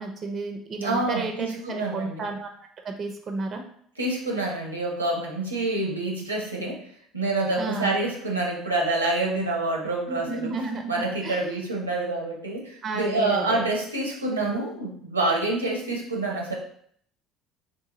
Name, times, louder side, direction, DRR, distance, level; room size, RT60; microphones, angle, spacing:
voice 1, 0.0-2.5 2.8-3.6 7.6-7.9 10.1-11.4 12.8-13.6 14.5-14.7, right 3 dB, 40° right, 4 dB, 0.5 m, -32 dB
voice 2, 0.8-2.3 4.0-6.8 7.1-10.5 10.9-16.6, right 2 dB, 90° right, -1 dB, 0.6 m, -27 dB
3.5 x 2.7 x 3.0 m, 0.62 s
figure-of-eight pair, 60°, 0 cm